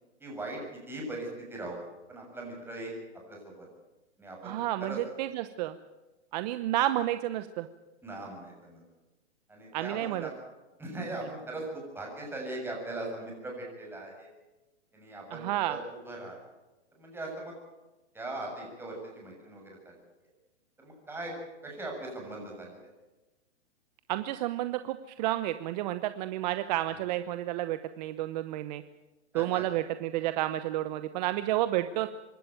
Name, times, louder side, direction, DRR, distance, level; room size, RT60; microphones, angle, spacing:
voice 1, 0.2-0.6 0.9-1.8 2.1-2.9 3.3-3.7 4.2-4.6 4.8-5.0 8.0-8.8 9.5-10.3 10.8-14.3 14.9-16.4 16.9-17.5 18.1-20.0 20.8-21.3 21.6-22.8 26.9-27.0 29.3-29.7, right 2 dB, 5° right, -1 dB, 7.0 m, -40 dB
voice 2, 4.4-5.8 6.3-7.7 9.7-10.3 15.3-15.8 24.1-28.8 29.3-32.1, right 14 dB, 35° right, 11 dB, 0.9 m, -31 dB
25.0 x 13.0 x 9.1 m, 1.1 s
hypercardioid pair, 145°, 35 cm